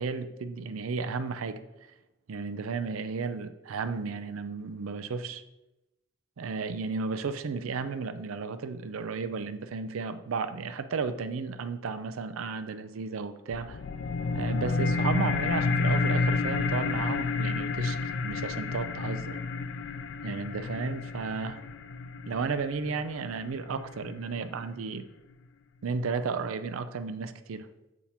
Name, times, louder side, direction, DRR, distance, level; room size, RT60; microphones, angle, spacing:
voice 1, 0.0-1.6 2.3-5.4 6.4-13.8 14.3-18.0 18.2-19.4 20.2-21.6 22.3-25.0 25.8-27.7, right 4 dB, 90° right, 10 dB, 0.5 m, -33 dB
sound 1, 13.5-24.5, left 4 dB, 60° left, 0.3 m, -30 dB
7.0 x 3.6 x 4.3 m, 0.95 s
head